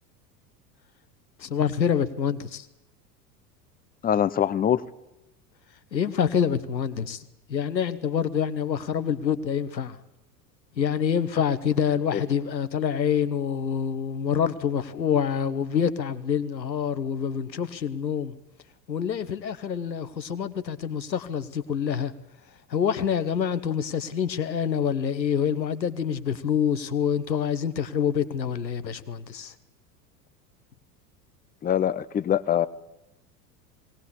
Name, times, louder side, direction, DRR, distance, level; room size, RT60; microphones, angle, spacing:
voice 1, 1.4-2.7 5.9-10.0 10.8-18.3 18.9-22.1 22.7-29.5, left 7 dB, 85° left, 1.2 m, -26 dB
voice 2, 4.0-4.8 31.6-32.7, left 9 dB, 20° left, 0.7 m, -23 dB
20.0 x 18.5 x 8.3 m
figure-of-eight pair, 75°, 50 cm